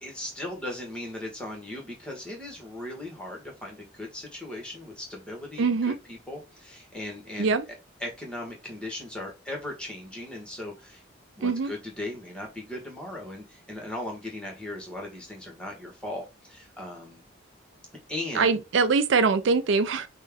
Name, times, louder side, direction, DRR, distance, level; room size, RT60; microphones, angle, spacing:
voice 1, 0.0-7.6 8.0-11.0 11.3-17.2 18.1-18.5, left 1 dB, 5° left, 1.2 m, -38 dB
voice 2, 5.6-6.0 7.4-7.7 11.4-11.7 18.3-20.1, right 4 dB, 70° right, 0.4 m, -23 dB
5.4 x 2.2 x 3.4 m
head